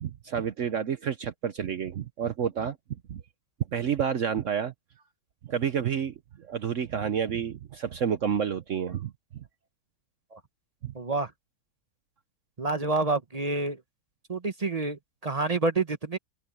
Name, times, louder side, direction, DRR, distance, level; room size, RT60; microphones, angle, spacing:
voice 1, 0.0-2.8 3.1-3.2 3.7-4.7 5.4-9.4 10.8-10.9, right 8 dB, 85° right, 0.6 m, -30 dB
voice 2, 10.9-11.3 12.6-13.8 14.3-16.2, right 3 dB, 30° right, 0.7 m, -28 dB
omnidirectional pair, 2.4 m